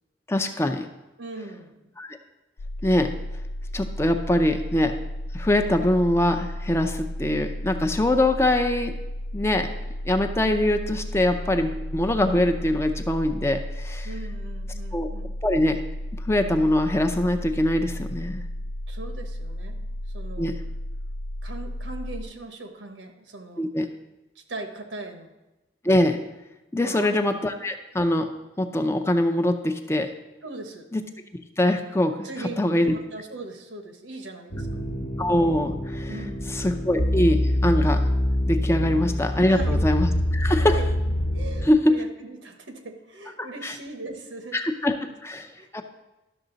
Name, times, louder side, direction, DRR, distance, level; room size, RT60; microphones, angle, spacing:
voice 1, 0.3-0.9 2.0-2.2 2.8-3.1 3.7-4.9 5.3-8.9 9.3-9.7 10.1-14.1 14.9-15.1 15.4-15.8 16.1-18.4 20.4-20.5 23.6-23.9 25.8-26.2 26.7-28.3 28.6-30.1 30.9-31.0 31.6-32.3 32.6-32.9 35.2-36.1 36.6-38.0 38.5-40.8 41.6-42.0 43.4-43.7 44.5-45.0 45.2-45.5 45.7-45.8, left 1 dB, 15° left, 6 dB, 0.5 m, -23 dB
voice 2, 1.2-1.9 14.0-15.3 18.9-19.9 20.1-20.5 21.4-23.7 24.3-25.3 26.8-27.2 30.4-30.9 32.2-34.8 36.1-36.6 38.8-39.0 39.4-39.8 40.6-40.9 41.3-44.6 45.0-45.1 45.6-45.8, right 2 dB, 90° right, 5 dB, 1.2 m, -39 dB
sound 1, 2.6-22.2, left 1 dB, 75° left, 0.4 m, -33 dB
sound 2, 34.5-41.7, left 1 dB, 60° left, 1.0 m, -25 dB
12.0 x 6.5 x 3.9 m, 1.0 s
head